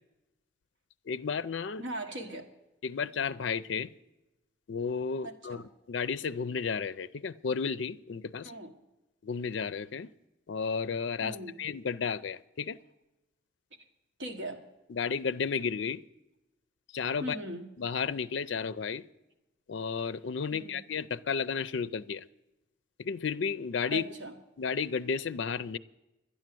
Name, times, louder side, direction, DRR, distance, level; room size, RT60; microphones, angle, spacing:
voice 1, 1.1-1.8 2.8-3.9 4.7-5.6 5.9-8.5 9.2-10.1 10.5-12.8 14.9-16.0 16.9-17.4 17.8-19.0 19.7-22.2 23.0-24.0 24.6-25.8, left 5 dB, 65° left, 0.4 m, -33 dB
voice 2, 1.8-2.4 5.2-5.7 8.4-8.7 11.2-11.6 13.8-13.9 14.2-14.6 17.2-17.7 20.5-20.8 23.9-24.3, right 1 dB, 70° right, 1.5 m, -39 dB
11.5 x 10.0 x 7.6 m
head